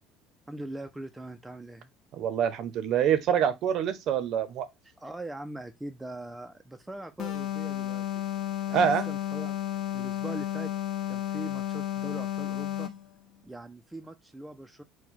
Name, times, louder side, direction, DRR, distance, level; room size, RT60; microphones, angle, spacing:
voice 1, 0.5-1.9 5.0-8.0 8.7-9.6 9.9-10.7 11.1-12.9 13.4-14.8, right 1 dB, 5° right, 0.4 m, -41 dB
voice 2, 2.1-4.7 8.7-9.1, right 8 dB, 50° right, 0.7 m, -26 dB
sound 1, 7.2-13.1, left 12 dB, 45° left, 0.6 m, -32 dB
4.6 x 2.2 x 3.9 m
cardioid pair, 145°, 0 cm